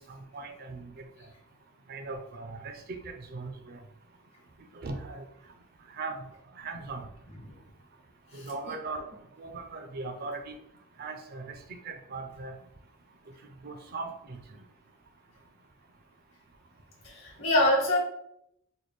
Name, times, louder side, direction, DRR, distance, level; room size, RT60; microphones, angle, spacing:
voice 1, 0.3-0.9 1.9-3.8 4.8-5.2 6.0-6.2 6.6-7.0 8.3-9.1 9.4-10.5 11.0-11.5 11.8-12.5 13.6-14.4, right 3 dB, 45° right, 6 dB, 0.4 m, -38 dB
voice 2, 17.0-18.0, left 1 dB, 55° left, -4 dB, 1.1 m, -24 dB
4.0 x 2.2 x 3.2 m, 0.76 s
head